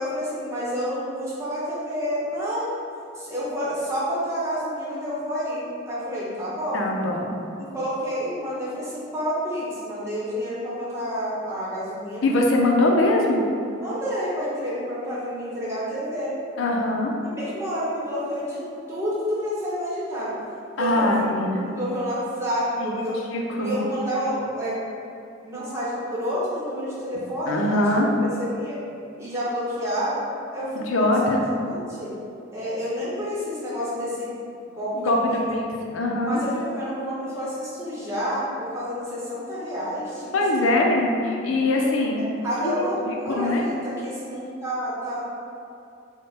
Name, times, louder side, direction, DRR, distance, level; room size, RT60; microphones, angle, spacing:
voice 1, 0.0-2.7 3.1-6.9 7.6-12.3 13.8-16.3 17.2-18.6 18.9-20.3 20.7-23.2 23.6-24.8 25.4-27.8 28.4-28.8 29.2-30.2 30.5-32.1 32.5-34.3 34.7-35.4 36.2-40.8 42.4-45.2, equal, 15° right, -9 dB, 0.9 m, -29 dB
voice 2, 6.7-7.3 12.2-13.4 16.6-17.1 20.8-21.6 22.8-23.0 23.3-23.8 27.5-28.1 30.7-31.4 34.9-35.6 35.9-36.4 40.3-42.3 42.6-43.6, left 1 dB, 75° left, 0 dB, 0.5 m, -22 dB
3.6 x 2.1 x 4.1 m, 2.5 s
head